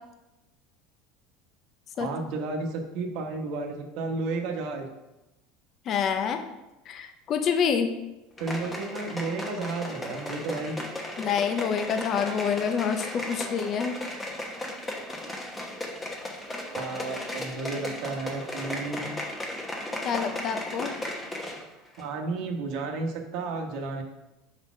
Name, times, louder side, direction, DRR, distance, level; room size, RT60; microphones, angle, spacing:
voice 1, 1.9-4.9 8.4-11.0 16.7-19.1 22.0-24.0, right 3 dB, 60° right, 4 dB, 1.1 m, -32 dB
voice 2, 5.9-6.4 6.9-7.9 11.2-13.9 20.0-20.9, left 7 dB, 35° left, 7 dB, 0.6 m, -27 dB
sound 1, 8.4-21.7 21.9-22.0, left 1 dB, 10° left, 1.1 m, -36 dB
5.1 x 4.1 x 6.0 m, 0.98 s
supercardioid pair, 145°, 0 cm